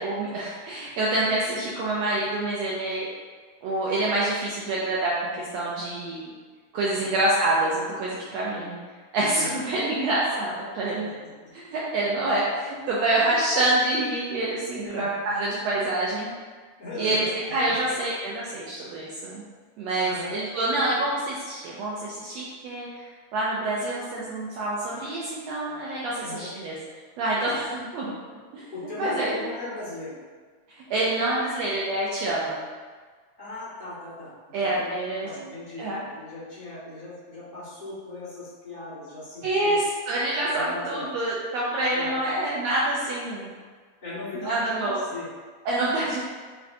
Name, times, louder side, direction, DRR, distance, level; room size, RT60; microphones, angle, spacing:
voice 1, 0.0-3.1 3.6-6.3 6.7-8.8 9.1-11.1 11.5-16.3 17.0-19.4 19.8-23.0 23.3-26.8 27.2-28.1 28.5-28.7 29.0-29.4 30.9-32.6 34.5-35.3 35.8-36.0 39.4-39.8 40.1-43.5 44.4-45.0 45.6-46.2, right 2 dB, 85° right, -6 dB, 1.5 m, -26 dB
voice 2, 10.6-10.9 14.8-15.0 16.8-17.3 17.8-17.9 20.0-20.4 26.2-26.5 28.7-30.2 33.4-39.8 40.5-41.1 41.9-42.1 44.0-45.3, left 2 dB, 45° left, -13 dB, 0.6 m, -38 dB
6.4 x 2.2 x 2.7 m, 1.5 s
omnidirectional pair, 3.6 m